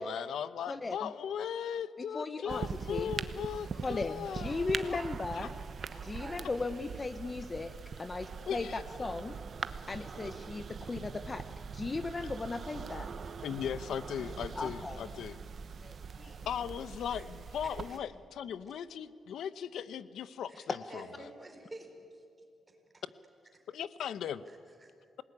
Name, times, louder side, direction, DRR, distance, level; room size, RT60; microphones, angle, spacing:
voice 1, 0.0-5.0 5.3-5.5 8.4-8.8 13.4-15.4 16.5-21.3 23.7-24.5, left 8 dB, 90° left, 14 dB, 0.8 m, -38 dB
voice 2, 2.1-3.1 3.8-5.5 6.0-9.4 9.9-11.4 11.7-13.1 14.6-15.0 15.8-16.3, left 3 dB, 25° left, 10 dB, 0.9 m, -37 dB
sound 1, 2.5-18.0, right 6 dB, 50° right, 1.0 m, -42 dB
voice 3, 5.9-6.6 7.2-7.3 17.1-17.2 17.9-18.0 20.5-22.2 22.9-23.0 24.5-24.9, right 2 dB, 20° right, 3 dB, 4.4 m, -51 dB
27.0 x 19.0 x 9.8 m, 2.4 s
wide cardioid pair, 145°, 0 cm